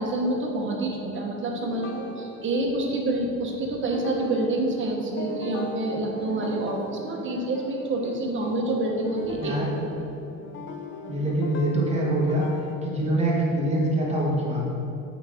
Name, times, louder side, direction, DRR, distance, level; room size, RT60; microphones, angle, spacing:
voice 1, 0.0-9.6, right 2 dB, 35° right, 0 dB, 1.1 m, -27 dB
sound 1, 1.6-3.4 3.8-12.8, left 3 dB, 35° left, 0.5 m, -39 dB
voice 2, 9.4-9.7 11.1-12.5 12.8-14.6, right 1 dB, 20° right, -4 dB, 1.5 m, -24 dB
8.0 x 5.1 x 3.6 m, 2.8 s
cardioid pair, 120°, 35 cm